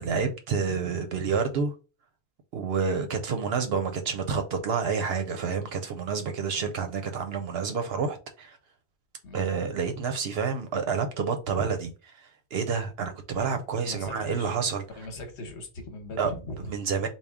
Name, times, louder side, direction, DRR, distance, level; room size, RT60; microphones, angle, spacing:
voice 1, 0.0-1.7 2.5-8.6 9.3-11.9 12.5-14.8 16.2-16.3 16.7-17.1, right 5 dB, 65° right, 0.8 m, -29 dB
voice 2, 13.8-14.6 15.0-16.7, left 1 dB, 70° left, 1.2 m, -40 dB
3.5 x 2.3 x 3.5 m
omnidirectional pair, 1.2 m